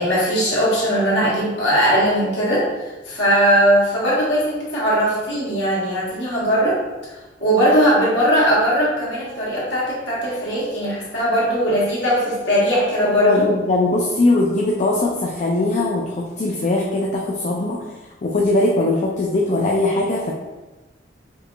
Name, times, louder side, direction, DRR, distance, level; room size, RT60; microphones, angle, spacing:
voice 1, 0.0-2.6 3.1-6.8 7.4-13.5, equal, 75° left, -7 dB, 1.4 m, -19 dB
voice 2, 13.0-17.8 18.2-20.3, left 2 dB, 40° left, -1 dB, 0.4 m, -20 dB
5.2 x 2.7 x 2.3 m, 1.2 s
head